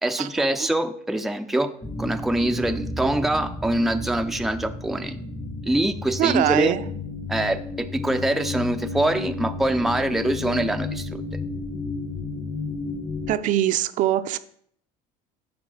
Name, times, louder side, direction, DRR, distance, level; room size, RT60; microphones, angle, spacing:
voice 1, 0.0-1.7 2.0-5.2 5.6-6.8 7.3-11.4, right 1 dB, ahead, 0.4 m, -24 dB
sound 1, 1.8-13.4, left 3 dB, 15° left, 0.8 m, -32 dB
voice 2, 6.2-6.8 13.3-14.4, right 12 dB, 55° right, 0.5 m, -22 dB
9.5 x 4.3 x 6.3 m
cardioid pair, 130°, 16 cm